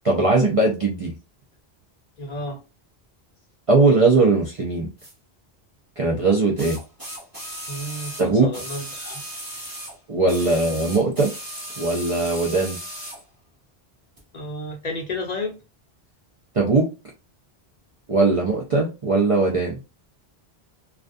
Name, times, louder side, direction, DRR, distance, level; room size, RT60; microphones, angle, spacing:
voice 1, 0.0-1.1 3.7-4.9 6.0-6.8 8.2-8.5 10.1-11.3 11.8-12.8 16.5-16.9 18.1-19.8, right 3 dB, 45° right, 0.5 m, -19 dB
voice 2, 2.2-2.6 7.7-9.2 10.5-10.6 14.3-15.5, left 1 dB, 50° left, 0.6 m, -32 dB
sound 1, 5.0-5.1 6.6-10.0 10.3-13.2 14.2-14.3, equal, 20° right, 1.0 m, -36 dB
2.4 x 2.2 x 2.5 m
omnidirectional pair, 1.1 m